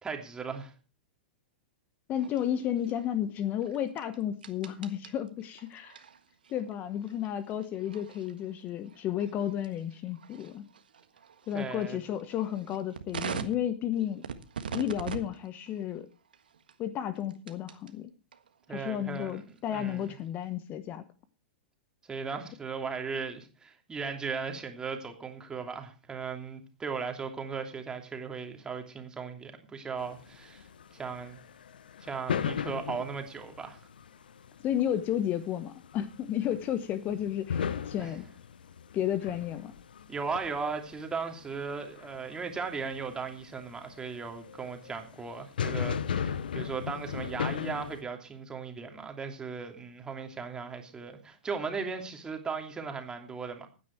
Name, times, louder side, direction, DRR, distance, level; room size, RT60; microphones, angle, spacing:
voice 1, 0.0-0.7 11.5-12.0 18.7-19.4 19.7-20.1 22.1-31.4 32.0-33.8 38.0-38.1 40.1-53.7, right 5 dB, 15° right, 2.9 m, -37 dB
voice 2, 2.1-6.0 6.5-10.6 11.5-14.3 14.7-16.1 16.8-18.1 18.7-21.0 34.6-38.2 38.9-39.7, left 10 dB, 35° left, 1.1 m, -32 dB
sound 1, 2.1-17.9 18.3-20.4, right 7 dB, 75° right, 1.5 m, -45 dB
sound 2, 30.0-48.0, left 7 dB, 75° left, 0.9 m, -37 dB
15.0 x 9.7 x 4.6 m
hypercardioid pair, 105°, 5 cm